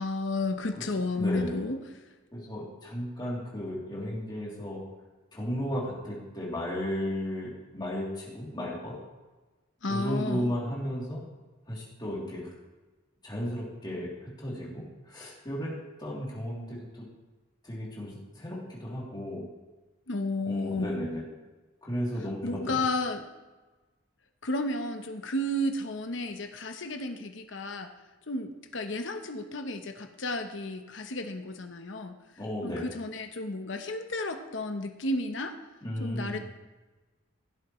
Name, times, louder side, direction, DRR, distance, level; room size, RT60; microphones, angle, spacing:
voice 1, 0.0-1.8 9.8-10.6 20.1-21.0 22.4-23.3 24.4-27.9 28.3-32.2 32.6-35.5 36.0-36.4, left 2 dB, 70° left, 6 dB, 0.9 m, -32 dB
voice 2, 1.2-1.5 2.3-4.8 5.3-8.9 9.9-11.2 11.7-12.5 13.2-17.0 17.6-19.4 20.4-21.2 21.8-22.8 32.4-32.9 35.8-36.4, equal, 20° left, -5 dB, 3.0 m, -34 dB
16.5 x 7.8 x 3.1 m, 1.2 s
head